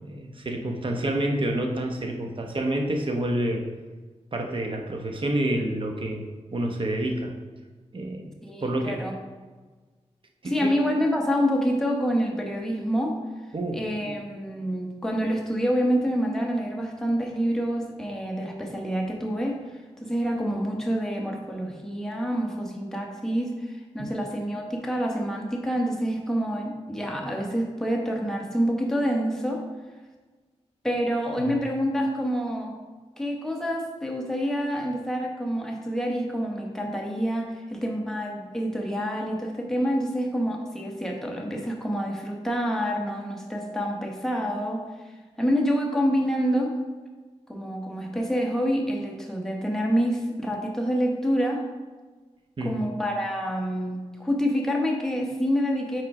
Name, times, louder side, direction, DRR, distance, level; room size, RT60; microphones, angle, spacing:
voice 1, 0.0-3.6 4.3-7.3 7.9-8.3 8.6-9.0 10.4-10.7 13.5-14.2 24.0-24.1 31.4-31.5 52.6-52.7, right 1 dB, 50° right, 3 dB, 0.9 m, -28 dB
voice 2, 8.4-9.1 10.4-13.2 13.7-19.6 20.0-29.6 30.8-32.8 33.2-44.8 45.4-46.7 47.5-51.6 52.6-56.0, equal, 5° left, 0 dB, 1.1 m, -27 dB
4.9 x 4.5 x 4.8 m, 1.3 s
wide cardioid pair, 90°, 12 cm